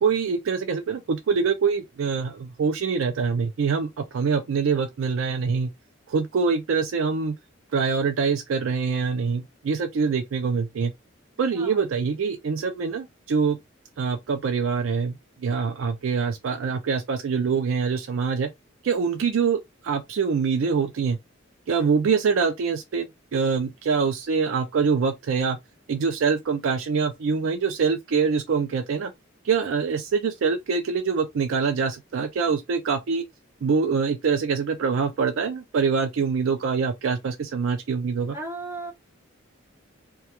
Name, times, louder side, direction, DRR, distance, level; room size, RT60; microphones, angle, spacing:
voice 1, 0.0-5.7 6.1-7.3 7.7-10.9 11.4-13.6 14.0-15.2 15.4-18.5 18.8-21.2 21.7-25.6 25.9-29.1 29.4-33.2 33.6-38.4, right 5 dB, 75° right, 0.4 m, -24 dB
voice 2, 38.3-38.9, right 2 dB, 10° right, 0.6 m, -34 dB
2.3 x 2.2 x 2.8 m
head